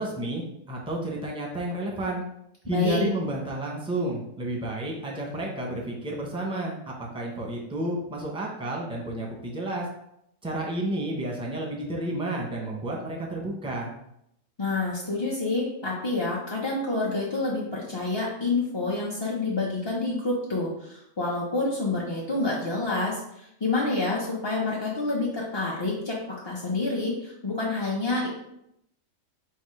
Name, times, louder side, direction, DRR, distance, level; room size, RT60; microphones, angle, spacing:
voice 1, 0.0-2.2 2.6-9.9 10.4-13.9, right 1 dB, 5° right, -2 dB, 0.6 m, -31 dB
voice 2, 2.7-3.1 14.6-26.2 26.4-28.3, left 3 dB, 35° left, -5 dB, 0.4 m, -28 dB
4.2 x 2.4 x 4.7 m, 0.78 s
omnidirectional pair, 1.4 m